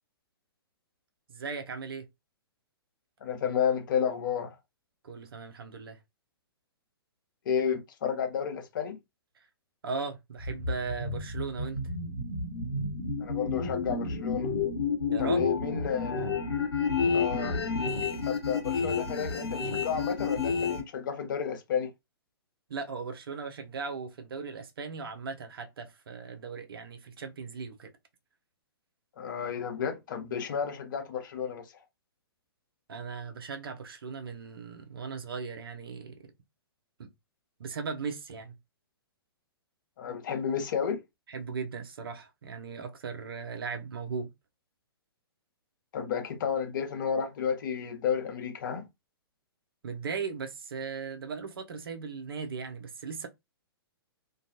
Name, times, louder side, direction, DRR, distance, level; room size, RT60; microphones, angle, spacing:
voice 1, 1.3-2.1 5.0-6.0 9.4-9.5 9.8-11.8 15.1-15.5 22.7-27.9 32.9-36.2 37.0-37.1 37.6-38.5 41.3-44.3 49.8-53.3, right 5 dB, 65° right, 0.6 m, -38 dB
voice 2, 3.2-4.5 7.5-9.0 13.2-14.5 15.2-16.3 17.1-17.5 18.0-21.9 29.2-31.6 40.0-41.0 45.9-48.8, left 7 dB, 50° left, 0.7 m, -31 dB
sound 1, 10.4-20.8, left 4 dB, 80° left, 1.0 m, -30 dB
2.5 x 2.3 x 2.7 m
figure-of-eight pair, 115°, 13 cm